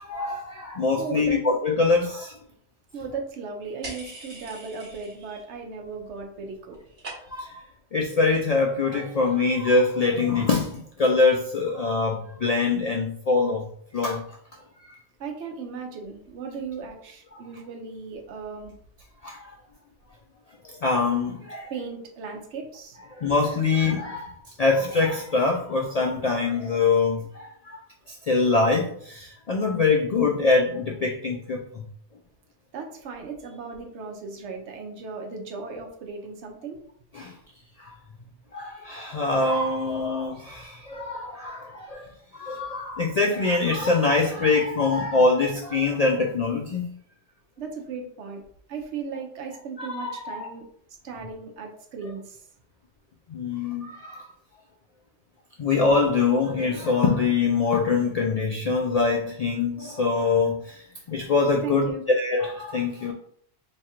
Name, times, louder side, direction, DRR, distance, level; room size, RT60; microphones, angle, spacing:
voice 1, 0.0-2.4 7.3-7.6 7.9-13.7 13.9-14.2 19.2-19.5 20.6-21.7 23.1-27.8 28.1-31.6 37.1-37.3 37.8-37.9 38.5-46.9 49.8-50.5 53.3-54.3 55.6-63.1, left 3 dB, 65° left, 1 dB, 0.3 m, -24 dB
voice 2, 1.0-1.4 2.9-6.8 15.2-18.7 21.7-23.0 32.7-36.8 47.6-48.4 48.7-50.6 51.0-52.5 61.6-62.0, right 5 dB, 80° right, 2 dB, 1.0 m, -36 dB
sound 1, 3.8-5.4 5.7-6.3 6.5-7.6, right 2 dB, 60° right, 1.3 m, -42 dB
3.2 x 2.4 x 4.2 m, 0.64 s
omnidirectional pair, 1.2 m